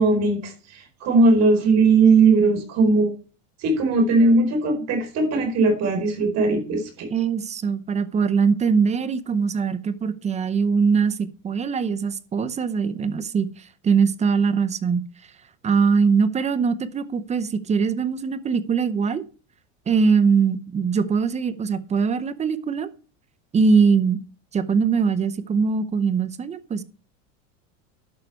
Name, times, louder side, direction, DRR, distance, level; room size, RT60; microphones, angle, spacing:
voice 1, 0.0-3.1 3.6-7.1, right 3 dB, 40° right, 3 dB, 4.5 m, -19 dB
voice 2, 7.1-15.0 15.6-19.2 19.9-22.9 23.5-24.2 24.5-26.8, right 5 dB, 15° right, 13 dB, 0.7 m, -22 dB
11.5 x 6.5 x 4.6 m, 0.37 s
supercardioid pair, 145°, 39 cm